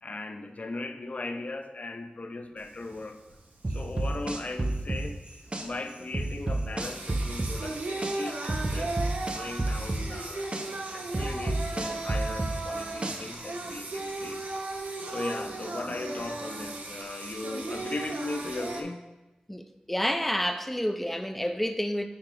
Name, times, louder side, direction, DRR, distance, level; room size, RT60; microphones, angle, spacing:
voice 1, 0.0-3.2 3.7-5.2 5.6-10.5 10.9-14.4 15.0-19.0, left 2 dB, 55° left, 0.6 m, -38 dB
Singing, 2.6-18.8, right 2 dB, 75° right, 0.8 m, -37 dB
sound 1, 3.6-5.7 6.1-8.2 8.5-10.7 11.1-13.4, right 2 dB, 40° right, 0.7 m, -29 dB
voice 2, 19.5-22.1, equal, 5° left, 0.4 m, -29 dB
8.7 x 2.9 x 4.7 m
wide cardioid pair, 50°, 3 cm